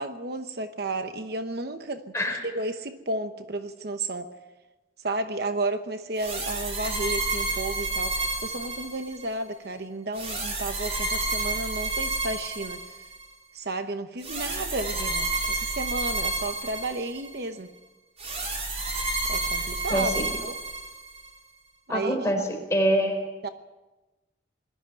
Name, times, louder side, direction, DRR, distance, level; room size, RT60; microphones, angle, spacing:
voice 1, 0.0-2.0 2.4-4.3 5.0-12.9 13.5-17.7 19.3-20.6 21.9-22.2 23.4-23.5, right 2 dB, 55° right, 8 dB, 1.0 m, -32 dB
sound 1, 6.2-9.3 10.1-13.2 14.2-17.4 18.2-21.3, right 2 dB, 35° right, 5.1 m, -30 dB
voice 2, 19.9-20.3 21.9-23.2, equal, 15° left, 3 dB, 4.2 m, -25 dB
21.0 x 14.0 x 9.1 m, 1.1 s
head